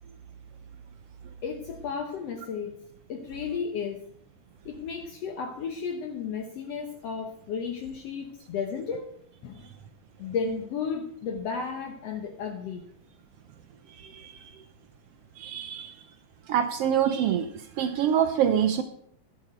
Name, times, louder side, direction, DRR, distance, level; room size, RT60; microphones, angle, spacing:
voice 1, 1.4-2.8 3.1-4.0 4.7-9.1 9.4-9.7 10.2-12.8, left 6 dB, 65° left, 4 dB, 1.8 m, -33 dB
voice 2, 14.0-14.6 15.4-16.0 16.5-18.8, right 9 dB, 85° right, 9 dB, 1.3 m, -26 dB
11.5 x 11.5 x 4.5 m, 0.67 s
omnidirectional pair, 3.7 m